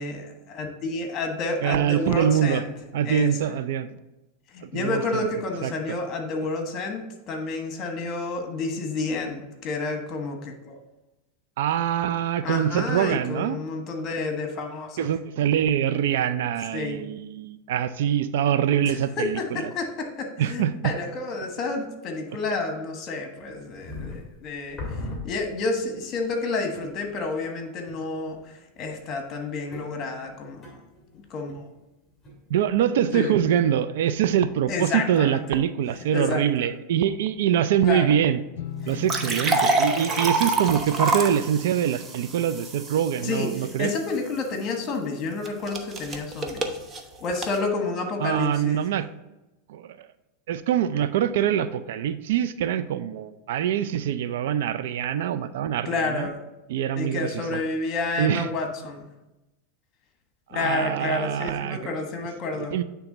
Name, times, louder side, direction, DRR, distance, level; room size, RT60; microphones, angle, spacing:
voice 1, 0.0-2.7 3.0-3.5 4.5-10.8 12.4-15.1 16.7-17.0 18.9-24.8 25.0-30.7 31.3-31.7 33.1-33.3 34.7-35.4 35.9-36.7 37.8-38.2 38.8-39.1 43.2-46.7 47.2-48.9 55.8-56.4 56.9-59.1 60.5-62.7, left 3 dB, 35° left, 4 dB, 1.3 m, -30 dB
voice 2, 1.6-2.6 2.9-4.0 4.6-5.3 5.6-5.7 11.6-13.6 15.0-19.7 20.4-20.9 32.5-38.4 38.9-43.9 48.2-49.1 49.7-50.1 50.5-56.3 56.7-57.6 58.2-58.5 60.5-61.9 62.5-62.8, right 9 dB, 75° right, 13 dB, 0.4 m, -24 dB
sound 1, 23.4-25.9 26.3-26.4 26.7-27.3 27.9-28.5 28.8-32.6 33.0-33.6, left 2 dB, 10° left, 2.3 m, -40 dB
sound 2, 38.6-44.2, left 9 dB, 80° left, 0.4 m, -41 dB
sound 3, 38.9-44.0 45.4-47.6, right 2 dB, 25° right, 0.8 m, -27 dB
8.9 x 3.4 x 3.9 m, 0.97 s
supercardioid pair, 130°, 0 cm